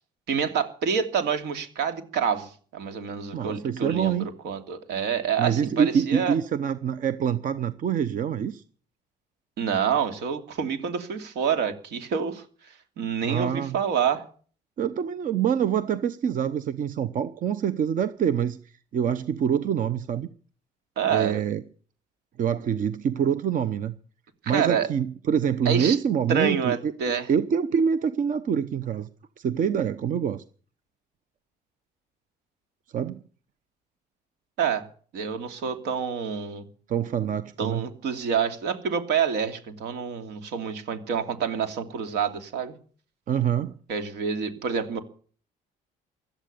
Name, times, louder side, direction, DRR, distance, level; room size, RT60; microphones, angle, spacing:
voice 1, 0.3-6.4 9.6-12.4 13.0-14.2 21.0-21.4 24.4-24.9 25.6-26.0 26.3-27.3 34.6-34.9 35.1-36.7 37.6-42.7 43.9-45.0, right 7 dB, 80° right, 7 dB, 2.8 m, -27 dB
voice 2, 3.3-4.3 5.4-8.6 13.2-13.8 14.8-18.6 18.9-20.3 21.1-21.6 22.4-23.9 24.5-26.9 27.3-29.1 29.4-30.4 32.9-33.2 36.9-37.8 43.3-43.7, right 8 dB, 50° right, 13 dB, 0.9 m, -25 dB
16.5 x 12.0 x 6.8 m, 0.43 s
cardioid pair, 110°, 17 cm